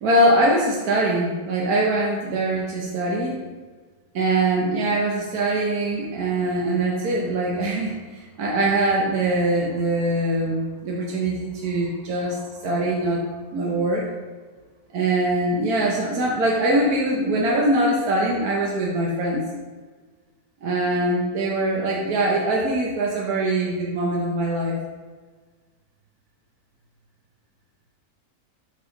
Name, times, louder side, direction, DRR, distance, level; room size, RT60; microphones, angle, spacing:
voice 1, 0.0-3.4 4.1-13.2 13.5-14.1 14.9-19.4 20.6-24.8, right 1 dB, 80° right, -3 dB, 1.4 m, -22 dB
5.2 x 4.7 x 3.9 m, 1.4 s
omnidirectional pair, 1.6 m